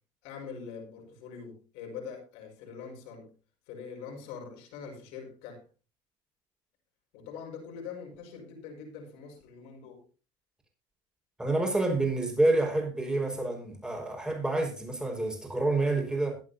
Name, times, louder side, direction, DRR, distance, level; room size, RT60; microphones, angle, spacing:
voice 1, 0.2-3.3 3.7-5.7 7.1-10.1, left 6 dB, 80° left, 5.3 m, -43 dB
voice 2, 11.4-16.4, right 2 dB, 5° right, 5.3 m, -28 dB
21.5 x 8.8 x 2.8 m
supercardioid pair, 105°, 11 cm